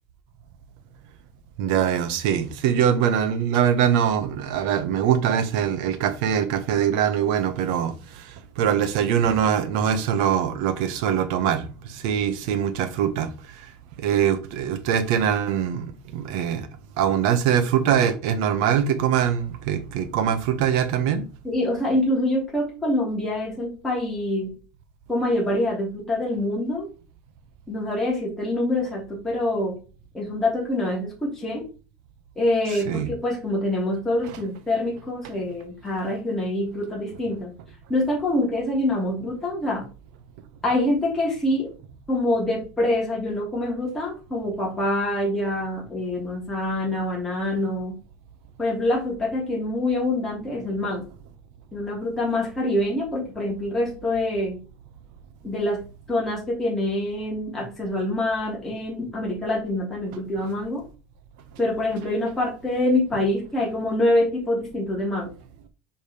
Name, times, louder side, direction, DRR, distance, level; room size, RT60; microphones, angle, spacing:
voice 1, 1.6-13.7 14.0-15.9 16.1-16.7 17.0-21.3 32.9-33.1 34.3-34.4, right 8 dB, 65° right, 1.1 m, -23 dB
voice 2, 21.4-24.5 25.1-26.9 27.7-29.8 30.1-31.7 32.4-37.5 37.9-39.9 40.6-41.7 42.1-48.0 48.6-51.1 51.7-54.6 55.4-55.8 56.1-60.8 61.6-65.3, left 1 dB, 10° left, 2.8 m, -25 dB
5.2 x 5.1 x 5.1 m
cardioid pair, 175°, 4 cm